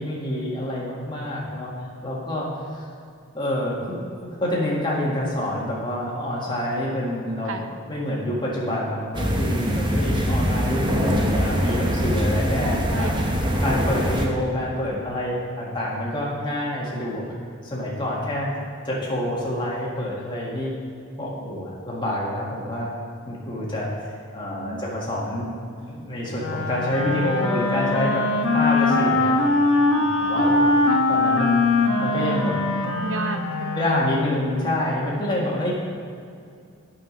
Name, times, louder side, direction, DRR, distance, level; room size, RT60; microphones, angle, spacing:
voice 1, 0.0-1.7 2.0-2.5 2.7-2.8 3.3-13.1 13.6-17.4 17.6-18.5 18.8-20.7 21.2-22.9 23.2-24.1 24.3-25.5 25.9-28.2 28.5-29.4 29.9-30.7 31.1-31.6 32.0-32.9 33.7-35.7, left 1 dB, 20° left, -5 dB, 1.7 m, -27 dB
sound 1, 9.1-14.3, equal, 20° right, 0.8 m, -23 dB
voice 2, 10.8-11.3 12.6-13.3 24.5-24.8 30.9-31.0 33.0-33.8, right 2 dB, 70° right, 6 dB, 0.7 m, -33 dB
Wind instrument woodwind instrument, 26.4-34.4, left 2 dB, 70° left, 1.0 m, -22 dB
8.9 x 5.8 x 5.6 m, 2.4 s
head